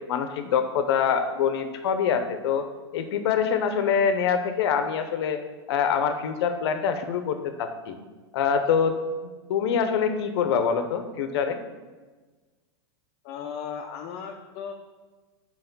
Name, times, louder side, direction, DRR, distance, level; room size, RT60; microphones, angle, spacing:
voice 1, 0.1-2.6 2.9-5.4 5.7-8.0 8.3-9.0 9.5-11.6, left 7 dB, 70° left, 8 dB, 0.9 m, -25 dB
voice 2, 13.2-14.7, left 7 dB, 45° left, 2 dB, 0.7 m, -36 dB
5.7 x 4.8 x 6.1 m, 1.3 s
hypercardioid pair, 125°, 14 cm